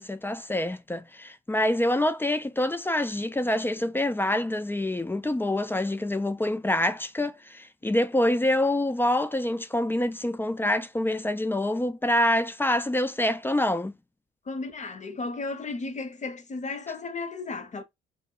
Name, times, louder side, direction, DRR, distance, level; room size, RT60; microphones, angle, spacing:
voice 1, 0.0-13.9, left 1 dB, 10° left, 0.3 m, -26 dB
voice 2, 14.5-17.8, left 3 dB, 35° left, 0.7 m, -34 dB
2.1 x 2.0 x 3.6 m
supercardioid pair, 70°, 21 cm